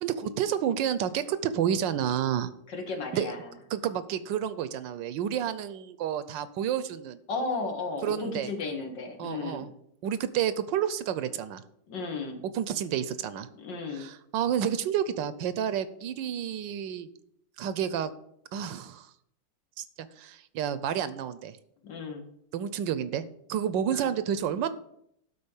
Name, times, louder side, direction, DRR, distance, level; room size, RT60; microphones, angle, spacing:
voice 1, 0.0-2.5 3.1-3.3 3.7-7.2 8.0-8.5 9.2-9.7 10.0-11.6 12.5-13.5 13.9-17.1 17.6-18.1 18.5-19.1 19.8-21.6 22.5-23.2 23.5-24.7, right 9 dB, 85° right, 14 dB, 1.4 m, -30 dB
voice 2, 2.7-3.5 7.3-9.7 11.9-12.4 13.6-14.1 21.8-22.3 23.9-24.0, left 3 dB, 75° left, 4 dB, 2.2 m, -34 dB
12.0 x 4.2 x 7.1 m, 0.73 s
omnidirectional pair, 2.0 m